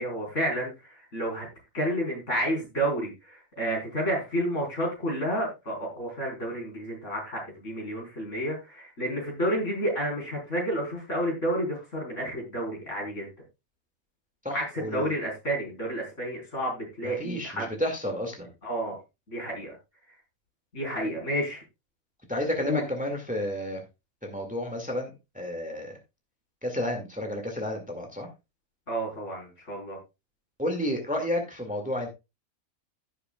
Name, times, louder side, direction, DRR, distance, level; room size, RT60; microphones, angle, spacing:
voice 1, 0.0-1.5 1.7-13.3 14.5-17.7 18.6-19.0 19.3-19.7 20.7-21.6 22.7-22.8 28.9-30.0, right 1 dB, 60° left, -1 dB, 4.7 m, -30 dB
voice 2, 14.4-15.1 17.0-18.5 21.1-21.2 22.3-23.8 24.2-26.0 26.6-28.3 30.6-32.1, left 1 dB, 5° right, 3 dB, 1.9 m, -31 dB
16.0 x 6.8 x 2.3 m, 0.25 s
omnidirectional pair, 1.4 m